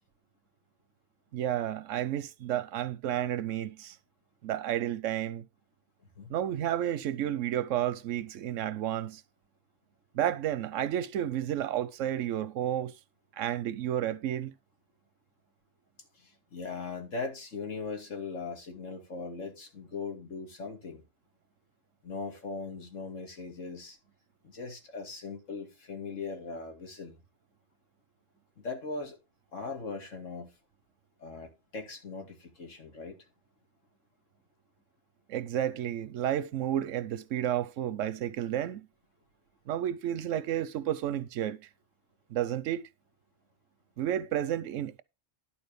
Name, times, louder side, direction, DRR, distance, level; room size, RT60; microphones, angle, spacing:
voice 1, 1.3-4.0 4.4-5.4 6.3-9.2 10.1-12.9 13.4-14.5 35.3-38.9 39.7-41.6 42.3-42.9 44.0-45.0, right 11 dB, 85° right, 1.0 m, -31 dB
voice 2, 16.2-21.0 22.0-24.0 24.4-27.2 28.6-29.2 29.5-30.5 31.2-33.2, left 4 dB, 90° left, 2.7 m, -39 dB
11.0 x 4.3 x 6.8 m
omnidirectional pair, 1.3 m